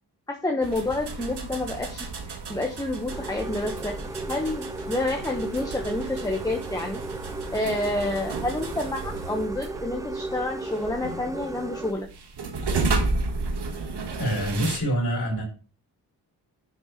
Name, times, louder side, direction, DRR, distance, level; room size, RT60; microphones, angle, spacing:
voice 1, 0.3-3.9 4.3-7.0 7.5-12.1, left 2 dB, 10° left, 1.1 m, -29 dB
sound 1, 0.6-14.8, right 3 dB, 80° right, 1.4 m, -33 dB
sound 2, 3.1-11.9, right 2 dB, 10° right, 0.3 m, -36 dB
voice 2, 14.2-15.4, equal, 70° left, 3.9 m, -26 dB
10.5 x 6.4 x 3.1 m
wide cardioid pair, 85°, 40 cm